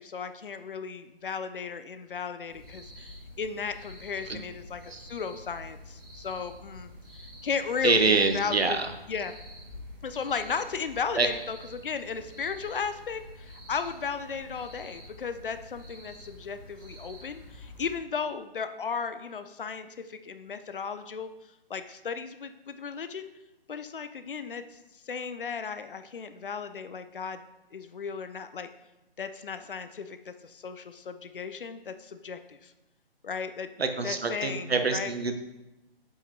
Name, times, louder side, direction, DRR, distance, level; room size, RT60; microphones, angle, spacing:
voice 1, 0.0-8.8 9.1-9.3 10.0-21.3 21.7-23.3 23.7-24.8 25.0-27.4 27.7-28.7 29.2-32.7 33.2-33.7 34.0-35.1, left 6 dB, 60° left, 10 dB, 0.5 m, -35 dB
sound 1, 2.5-18.0, left 1 dB, 25° right, 1.6 m, -48 dB
voice 2, 7.8-8.9 11.1-11.3 33.8-35.4, right 4 dB, 85° right, 7 dB, 0.8 m, -25 dB
7.7 x 5.0 x 2.7 m, 0.97 s
figure-of-eight pair, 145°, 30 cm